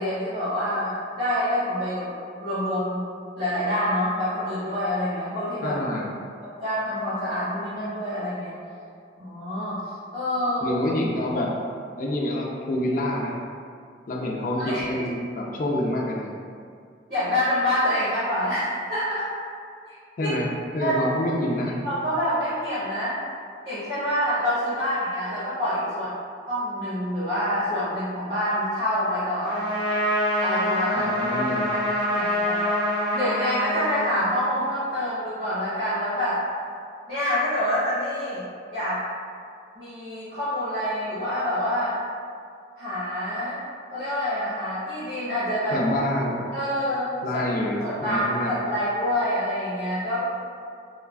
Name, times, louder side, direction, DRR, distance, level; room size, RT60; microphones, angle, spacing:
voice 1, 0.0-3.1 3.4-5.8 6.4-8.6 9.2-9.8 10.1-10.7 14.6-14.8 17.1-19.3 19.9-20.0 20.2-20.3 20.8-20.9 21.8-23.2 23.6-26.1 26.5-29.7 30.4-31.1 31.7-31.8 32.1-32.7 33.1-36.4 37.1-38.4 38.7-39.0 39.7-42.0 42.8-43.6 43.9-45.8 46.5-47.2 47.5-50.2, equal, 55° right, -14 dB, 1.0 m, -27 dB
voice 2, 5.6-6.1 10.6-11.5 12.0-13.4 14.1-16.3 20.2-20.5 20.7-21.8 30.9-31.7 45.7-46.4 47.2-48.5, left 1 dB, 45° left, -2 dB, 0.3 m, -27 dB
Trumpet, 29.4-34.7, equal, 25° right, 0.5 m, -26 dB
3.1 x 2.3 x 2.3 m, 2.3 s
head